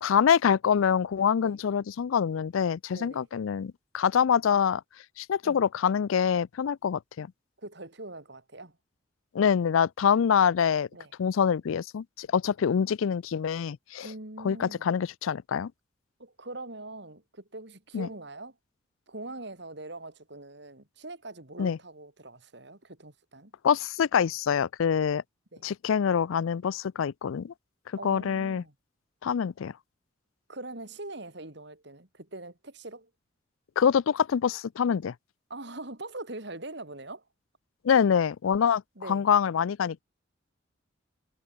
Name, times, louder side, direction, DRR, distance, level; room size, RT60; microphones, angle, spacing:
voice 1, 0.0-4.8 5.2-7.3 9.3-10.9 11.2-14.1 14.4-15.7 17.9-18.1 21.6-21.8 23.6-25.2 25.6-27.5 28.0-28.6 29.2-29.7 33.8-35.1 37.8-38.8 39.1-40.0, left 7 dB, 80° left, 0.4 m, -25 dB
voice 2, 2.9-3.3 5.4-5.6 7.6-8.8 10.9-11.1 14.0-14.9 16.2-18.6 19.1-23.5 25.5-25.6 28.0-28.7 30.5-33.1 35.5-37.2 39.0-39.3, right 2 dB, 55° right, 3.0 m, -42 dB
head